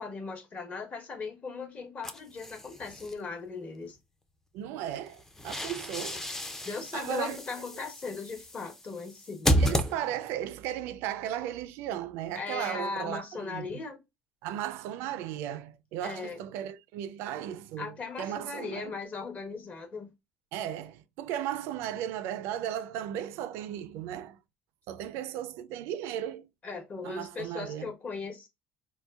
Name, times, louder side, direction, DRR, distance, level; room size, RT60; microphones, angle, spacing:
voice 1, 0.0-4.0 6.6-9.6 12.3-14.0 16.0-16.4 17.8-20.1 26.6-28.5, left 4 dB, 35° left, 1.0 m, -38 dB
sound 1, 2.0-3.1 5.1-10.5, equal, 10° left, 0.4 m, -32 dB
voice 2, 4.5-6.3 6.9-7.4 9.6-13.8 14.4-18.9 20.5-24.4 24.9-26.5 27.0-27.9, right 11 dB, 80° right, 0.4 m, -36 dB
3.8 x 2.2 x 2.3 m
cardioid pair, 105°, 4 cm